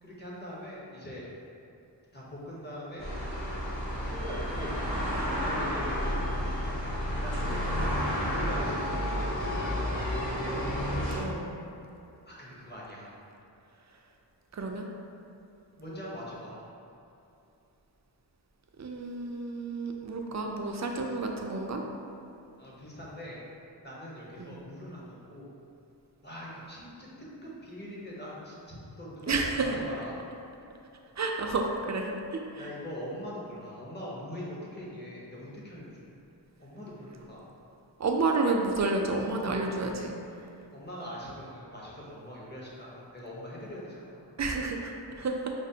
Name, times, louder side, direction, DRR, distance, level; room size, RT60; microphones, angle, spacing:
voice 1, 0.0-1.2 2.1-3.1 4.1-4.7 5.3-5.9 7.1-7.9 8.3-10.1 12.3-13.2 15.8-16.7 22.6-23.4 23.8-25.5 26.2-30.2 32.5-36.1 36.6-37.4 40.7-44.4, equal, 25° left, -6 dB, 0.9 m, -42 dB
sound 1, 3.0-11.2, equal, 80° left, 0.9 m, -31 dB
voice 2, 11.2-11.5 14.5-14.9 18.8-21.8 24.4-24.6 29.3-29.7 31.2-32.7 38.0-40.1 44.4-45.5, right 3 dB, 40° right, 2 dB, 0.4 m, -30 dB
5.0 x 2.0 x 2.7 m, 2.8 s
wide cardioid pair, 45°, 44 cm